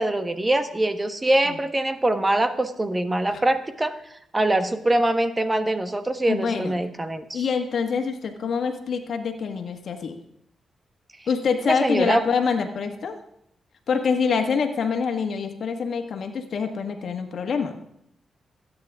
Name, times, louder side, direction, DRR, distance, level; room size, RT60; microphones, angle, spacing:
voice 1, 0.0-4.0 4.3-7.5 11.7-12.2, right 1 dB, 25° right, 8 dB, 1.3 m, -23 dB
voice 2, 6.3-6.8 7.3-10.2 11.3-13.2 13.9-17.7, left 5 dB, 70° left, 5 dB, 1.6 m, -25 dB
25.0 x 9.6 x 3.6 m, 0.74 s
cardioid pair, 70°, 0 cm